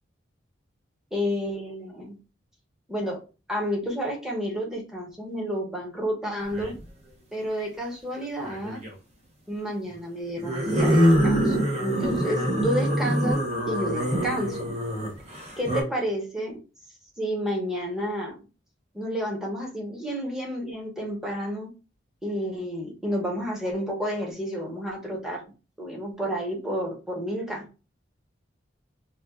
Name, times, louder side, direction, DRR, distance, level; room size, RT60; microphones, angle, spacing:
voice 1, 1.1-2.2 2.9-3.2 3.5-6.7 7.3-8.8 9.5-14.7 15.6-16.6 17.2-18.4 18.9-21.7 22.2-25.4 25.8-27.6, equal, 5° right, -2 dB, 0.9 m, -30 dB
sound 1, 6.5-6.8 8.4-8.9 10.4-15.8, equal, 35° right, 0.9 m, -24 dB
4.1 x 2.4 x 2.3 m, 0.32 s
head